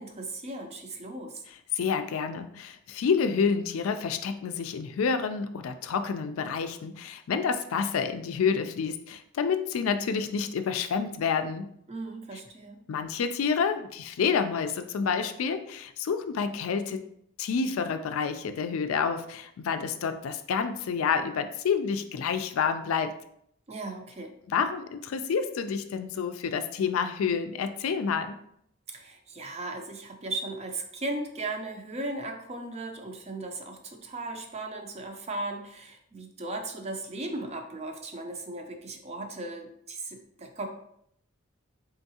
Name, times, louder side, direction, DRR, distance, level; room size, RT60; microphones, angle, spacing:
voice 1, 0.0-1.4 11.9-12.8 23.7-24.3 28.9-40.7, right 2 dB, 30° right, 4 dB, 0.5 m, -37 dB
voice 2, 1.7-11.7 12.9-17.0 17.4-23.1 24.5-28.4, left 6 dB, 80° left, 9 dB, 0.4 m, -29 dB
3.7 x 3.5 x 2.7 m, 0.70 s
head